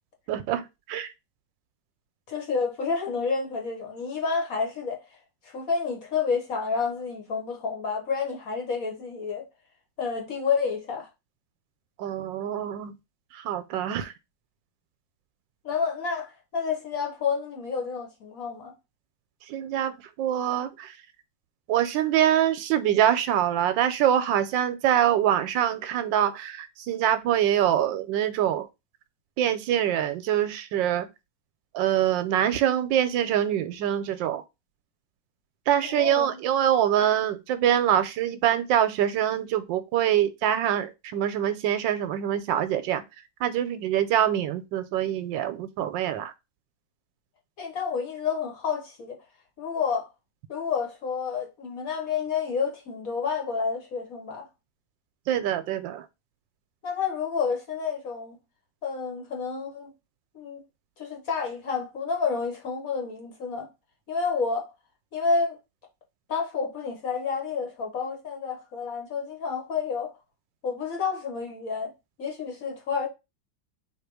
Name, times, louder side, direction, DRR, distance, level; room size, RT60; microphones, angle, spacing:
voice 1, 0.3-1.1 12.0-12.9 13.3-14.1 19.5-19.9 20.2-20.9 21.7-28.7 29.4-31.1 31.7-34.4 35.7-43.0 43.4-46.3 55.3-56.1, right 10 dB, 80° right, 1.3 m, -24 dB
voice 2, 2.3-5.0 5.4-9.5 10.0-11.1 15.6-18.7 35.8-36.4 47.6-49.2 49.6-50.1 50.5-54.5 56.8-58.4 58.8-59.9 60.3-60.6 61.0-63.7 64.1-64.7 65.1-65.6 66.3-70.1 70.6-71.9 72.2-73.1, left 5 dB, 50° left, 1.4 m, -29 dB
4.0 x 2.8 x 4.6 m
omnidirectional pair, 2.1 m